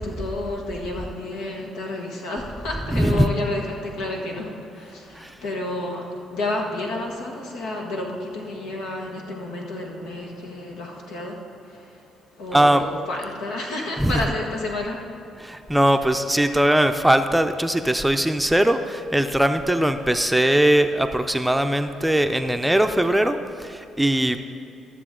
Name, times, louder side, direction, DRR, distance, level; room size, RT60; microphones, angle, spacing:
voice 1, 0.0-12.0 12.4-15.0 15.9-16.2, left 2 dB, 85° left, 0 dB, 1.5 m, -31 dB
voice 2, 2.9-3.3 5.1-5.4 12.5-12.8 14.0-14.1 15.4-24.4, right 1 dB, 5° right, 7 dB, 0.6 m, -20 dB
13.0 x 6.9 x 3.8 m, 2.8 s
supercardioid pair, 65°, 0 cm